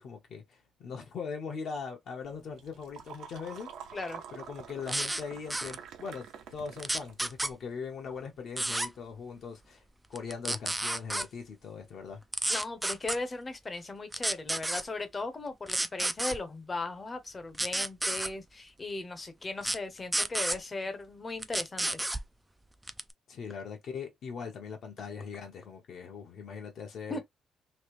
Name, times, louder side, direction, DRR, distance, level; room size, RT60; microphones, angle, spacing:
voice 1, 0.0-3.7 4.3-6.3 6.5-9.8 10.1-12.2 23.3-27.2, left 5 dB, 55° left, 1.0 m, -40 dB
sound 1, 2.2-7.5, right 8 dB, 75° right, 0.7 m, -47 dB
sound 2, 4.9-5.2 5.5-5.8 6.8-7.5 8.6-8.9 10.2-11.3 12.3-13.2 14.1-14.8 15.7-16.4 17.5-18.3 19.6-19.8 20.1-20.6 21.4-22.2 22.9-23.1, right 1 dB, 5° right, 0.3 m, -31 dB
voice 2, 12.5-22.0 27.1-27.2, left 3 dB, 20° left, 0.8 m, -37 dB
3.2 x 2.6 x 3.0 m
cardioid pair, 155°, 0 cm